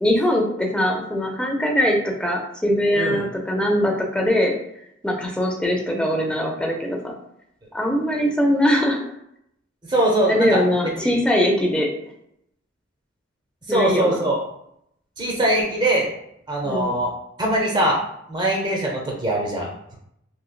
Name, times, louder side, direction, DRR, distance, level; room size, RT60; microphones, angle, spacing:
voice 1, 0.0-4.5 5.0-7.1 7.7-9.0 10.3-11.9 13.7-14.3 16.6-16.9, equal, 5° left, 0 dB, 0.5 m, -21 dB
voice 2, 9.9-10.6 11.0-11.2 13.7-14.4 15.2-16.1 16.5-17.1 17.4-18.0 18.3-20.0, right 1 dB, 25° right, -1 dB, 0.8 m, -22 dB
3.1 x 2.9 x 2.3 m, 0.76 s
head